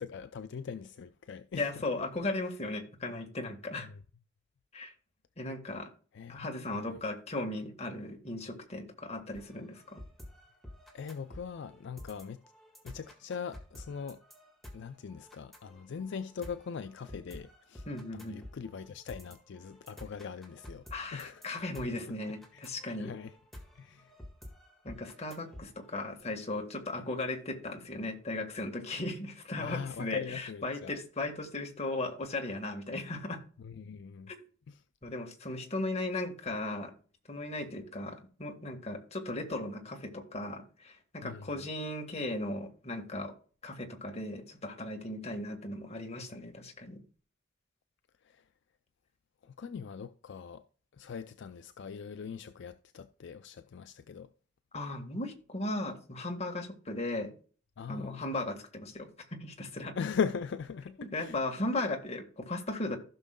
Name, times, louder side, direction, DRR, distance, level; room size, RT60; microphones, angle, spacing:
voice 1, 0.0-1.8 3.8-4.0 6.1-6.5 6.7-7.0 10.9-12.4 12.8-14.2 14.7-17.9 18.1-20.8 21.1-22.1 22.5-22.6 23.0-23.3 23.8-24.1 29.6-31.0 33.6-34.3 34.7-34.8 41.2-41.7 48.2-48.4 49.4-50.6 50.9-54.3 57.8-58.2 60.0-61.4, left 6 dB, 65° left, 0.4 m, -40 dB
voice 2, 1.6-3.9 4.7-4.9 5.4-5.9 6.3-10.0 17.9-18.4 20.9-23.1 24.8-33.4 34.3-34.4 35.0-36.9 37.3-43.3 43.6-47.0 54.7-57.3 57.9-59.1 59.4-59.9 61.0-63.0, left 2 dB, 35° left, 1.6 m, -37 dB
sound 1, 9.3-26.2, left 1 dB, ahead, 1.7 m, -51 dB
15.5 x 6.2 x 2.2 m
head